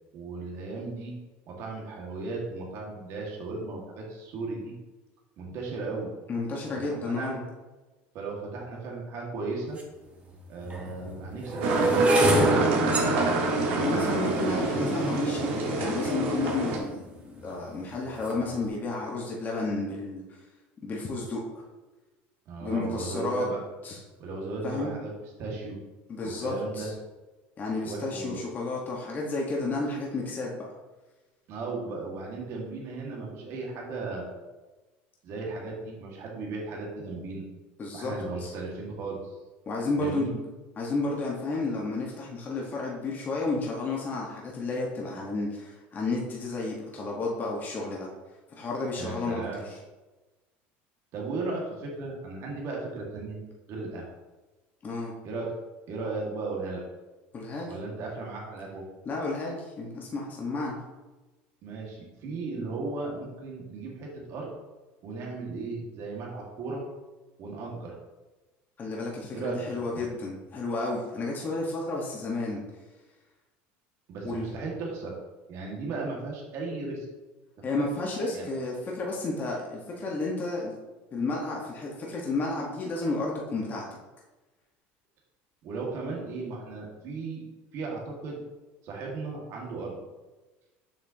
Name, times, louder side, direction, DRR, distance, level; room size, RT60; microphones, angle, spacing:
voice 1, 0.1-1.1 1.5-4.7 5.4-6.1 6.7-7.4 8.1-9.8 10.5-12.1 12.4-13.3 22.5-23.6 24.2-25.8 26.2-26.9 27.8-28.4 31.5-34.4 35.2-37.4 37.9-39.4 40.0-40.3 49.0-49.6 51.1-53.4 53.7-54.1 55.2-55.5 55.9-56.8 57.7-58.8 61.6-64.5 65.0-66.8 67.4-67.9 69.3-69.7 74.1-75.2 75.5-77.1 77.7-77.9 78.3-78.5 85.6-87.4 87.7-88.4 88.8-89.9, right 3 dB, 55° right, -2 dB, 1.9 m, -36 dB
voice 2, 6.3-7.4 13.8-20.2 20.8-21.6 22.6-23.4 23.8-24.0 24.6-24.9 26.1-26.9 27.6-30.6 37.8-38.1 38.4-38.5 39.7-40.4 40.8-48.1 48.5-49.8 54.8-55.1 57.3-57.7 59.0-60.8 68.8-72.6 74.2-74.5 77.6-80.7 81.1-83.9, left 3 dB, 35° left, -2 dB, 1.4 m, -32 dB
sound 1, 9.8-9.9 10.6-16.8 17.4-17.8 18.1-18.4, right 1 dB, 25° right, 1.4 m, -28 dB
sound 2, 11.6-16.8, right 2 dB, 80° right, 1.5 m, -27 dB
7.3 x 5.8 x 2.9 m, 1.2 s
supercardioid pair, 105°, 6 cm